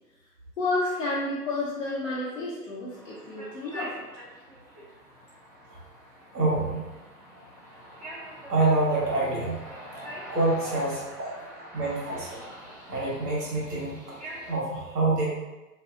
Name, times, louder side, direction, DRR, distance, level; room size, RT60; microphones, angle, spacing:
voice 1, 0.6-4.1 11.3-11.4, left 2 dB, 50° left, -7 dB, 0.7 m, -30 dB
sound 1, 2.9-14.6, right 1 dB, 25° right, 0.7 m, -44 dB
voice 2, 6.3-6.8 8.5-9.6 10.3-11.1 11.3-11.4 11.7-12.3 12.9-14.1 14.5-15.3, right 2 dB, 75° right, -4 dB, 1.0 m, -26 dB
2.7 x 2.2 x 2.3 m, 1.1 s
figure-of-eight pair, 120°, 49 cm